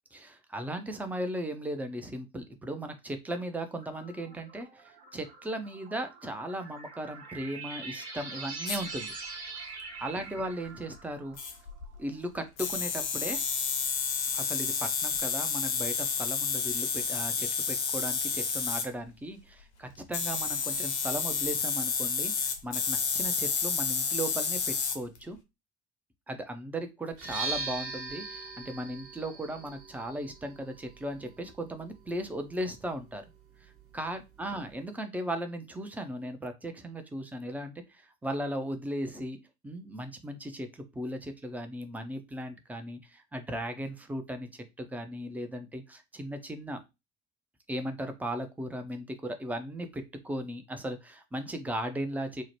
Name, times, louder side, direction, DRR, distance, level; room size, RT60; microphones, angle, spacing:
voice 1, 0.1-9.1 10.0-11.4 12.0-13.4 14.3-25.4 26.3-33.2 33.6-39.4 39.6-46.8 47.7-52.4, right 1 dB, 5° right, 8 dB, 0.4 m, -37 dB
sound 1, 3.8-11.9, right 3 dB, 65° right, 1.0 m, -44 dB
sound 2, 8.7-8.8 11.0-11.1 11.4-12.0 12.6-18.9 20.1-25.2, left 5 dB, 75° left, 0.8 m, -30 dB
sound 3, 27.1-34.9, right 3 dB, 40° right, 1.1 m, -42 dB
2.7 x 2.0 x 3.1 m, 0.24 s
figure-of-eight pair, 65°, 34 cm